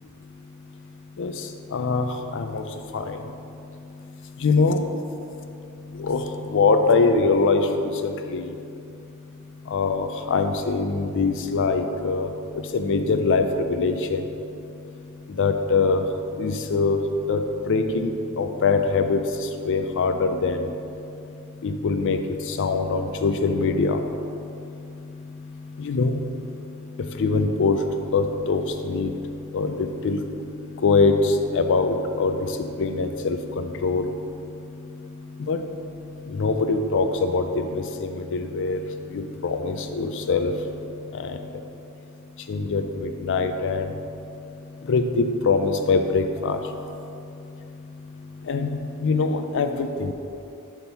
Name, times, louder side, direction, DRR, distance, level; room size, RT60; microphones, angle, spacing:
voice 1, 1.7-2.1 2.3-2.6 2.9-3.0 4.4-4.8 6.0-6.2 6.5-7.6 8.0-8.4 9.7-12.3 12.7-13.4 13.7-14.2 15.4-16.0 16.4-17.0 17.3-17.4 17.7-19.2 19.7-20.7 21.6-22.2 22.6-24.0 25.8-26.2 27.2-27.8 28.1-29.1 29.5-29.7 30.0-30.2 30.8-31.1 31.5-32.3 32.8-34.1 35.5-35.6 36.4-37.8 38.3-38.8 39.4-40.5 42.5-43.8 44.9-46.6 48.5-50.1, left 4 dB, 60° left, 7 dB, 0.4 m, -22 dB
6.1 x 3.5 x 5.6 m, 2.7 s
head